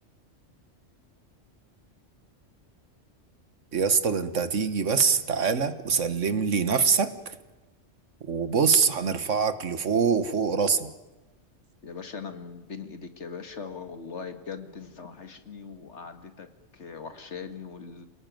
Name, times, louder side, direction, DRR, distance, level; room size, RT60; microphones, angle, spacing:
voice 1, 3.7-7.4 8.2-10.9, right 6 dB, 75° right, 1.7 m, -24 dB
voice 2, 11.8-18.1, left 5 dB, 65° left, 2.1 m, -40 dB
28.0 x 18.5 x 9.3 m
omnidirectional pair, 1.3 m